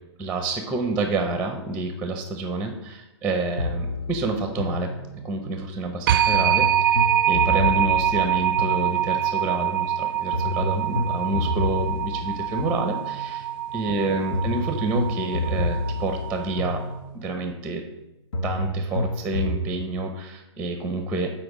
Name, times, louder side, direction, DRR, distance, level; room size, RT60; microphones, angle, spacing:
voice 1, 0.2-4.9 5.2-13.5 13.7-16.8 17.1-17.8 18.4-21.3, right 3 dB, 5° right, 5 dB, 0.7 m, -28 dB
sound 1, 3.6-5.5 6.3-9.4 10.3-13.4 14.3-17.4 18.3-19.7, left 2 dB, 70° left, 1.1 m, -29 dB
sound 2, 6.1-16.7, right 11 dB, 45° right, 0.5 m, -25 dB
7.7 x 4.5 x 4.9 m, 0.97 s
hypercardioid pair, 140°, 15 cm